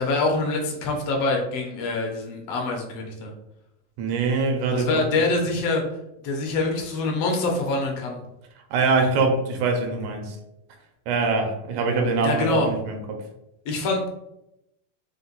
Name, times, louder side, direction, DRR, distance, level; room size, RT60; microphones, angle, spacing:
voice 1, 0.0-3.3 4.7-5.8 6.2-8.2 12.2-12.7 13.7-14.1, left 3 dB, 70° left, 1 dB, 1.7 m, -25 dB
voice 2, 4.0-4.9 8.7-10.4 11.1-13.2, right 4 dB, 85° right, 3 dB, 2.2 m, -23 dB
5.1 x 2.1 x 3.9 m, 0.84 s
omnidirectional pair, 3.3 m